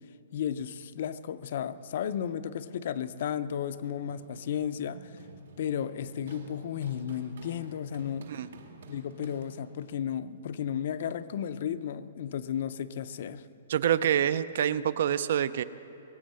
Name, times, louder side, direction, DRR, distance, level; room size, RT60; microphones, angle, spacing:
voice 1, 0.3-5.1 5.6-8.3 8.9-13.4, left 9 dB, 40° left, 13 dB, 0.5 m, -34 dB
Run, 3.5-9.9, right 3 dB, 70° right, 1.8 m, -51 dB
voice 2, 13.7-15.6, right 9 dB, 45° right, 16 dB, 0.4 m, -26 dB
22.0 x 8.0 x 7.6 m, 2.9 s
hypercardioid pair, 180°, 0 cm